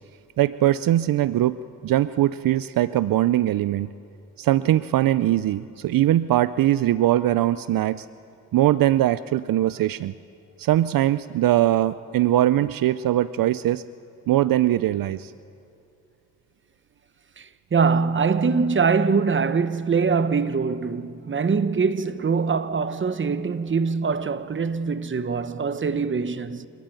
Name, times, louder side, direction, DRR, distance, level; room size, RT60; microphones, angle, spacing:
voice 1, 0.4-1.6 1.8-3.9 4.4-8.1 8.5-10.1 10.6-13.8 14.3-15.3, right 13 dB, 70° right, 0.5 m, -21 dB
voice 2, 17.4-26.7, right 5 dB, 35° right, 1.0 m, -23 dB
29.0 x 14.5 x 9.0 m
cardioid pair, 85°, 36 cm